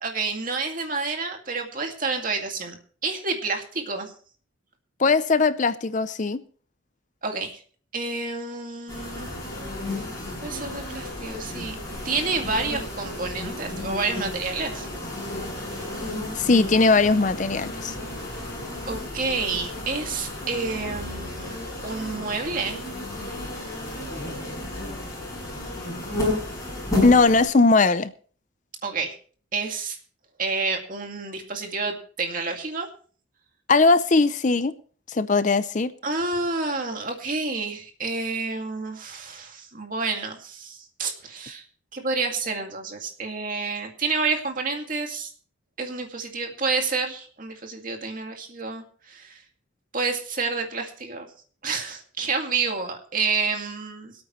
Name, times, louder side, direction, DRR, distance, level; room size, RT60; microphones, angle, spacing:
voice 1, 0.0-2.8 3.0-4.1 7.2-7.6 7.9-9.3 10.4-11.8 12.0-14.9 18.3-18.4 18.9-21.6 21.8-22.8 28.8-29.1 29.5-30.0 30.4-32.9 36.0-41.6 41.9-45.3 45.8-49.4 49.9-51.3 51.6-54.1, right 4 dB, 45° right, 2.2 m, -29 dB
voice 2, 5.0-6.4 16.4-17.9 27.0-28.1 33.7-34.7 35.1-35.9, left 3 dB, 40° left, 0.5 m, -19 dB
sound 1, 8.9-27.5, left 1 dB, 15° left, 6.0 m, -32 dB
25.5 x 8.8 x 3.1 m
head